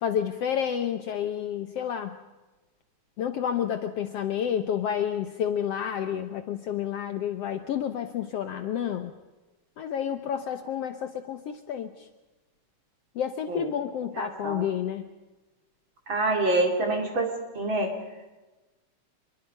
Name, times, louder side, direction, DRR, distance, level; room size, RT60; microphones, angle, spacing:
voice 1, 0.0-2.2 3.2-9.1 9.8-12.1 13.2-15.1, left 9 dB, 65° left, 8 dB, 1.7 m, -30 dB
voice 2, 14.2-14.6 16.1-17.9, right 2 dB, 40° right, 3 dB, 3.4 m, -26 dB
26.0 x 23.0 x 5.3 m, 1.1 s
omnidirectional pair, 3.5 m